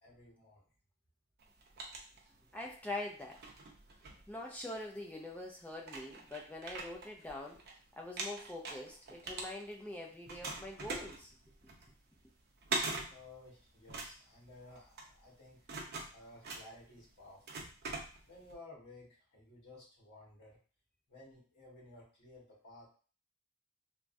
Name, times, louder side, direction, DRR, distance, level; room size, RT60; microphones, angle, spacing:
voice 1, 0.0-0.6 13.1-15.6 16.1-17.6 18.3-20.6 21.1-22.9, left 2 dB, 55° left, -4 dB, 1.4 m, -56 dB
sound 1, 1.4-2.7 3.2-4.9 5.4-5.5 5.8-7.7 8.0-9.9 10.3-18.5, right 3 dB, 45° right, 0.5 m, -43 dB
voice 2, 2.5-3.4 4.3-7.6 8.0-11.4, left 1 dB, 5° left, -1 dB, 0.3 m, -44 dB
3.4 x 2.1 x 2.5 m, 0.39 s
head